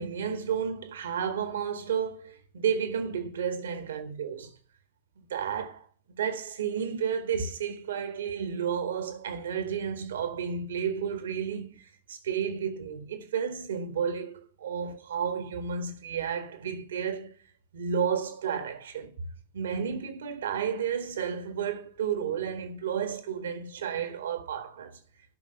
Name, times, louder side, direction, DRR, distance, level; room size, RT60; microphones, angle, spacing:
voice 1, 0.0-4.5 5.2-5.8 6.1-17.3 17.7-19.2 19.5-25.0, right 7 dB, 65° right, 1.6 m, -32 dB
11.5 x 6.0 x 5.6 m
figure-of-eight pair, 90°, 0 cm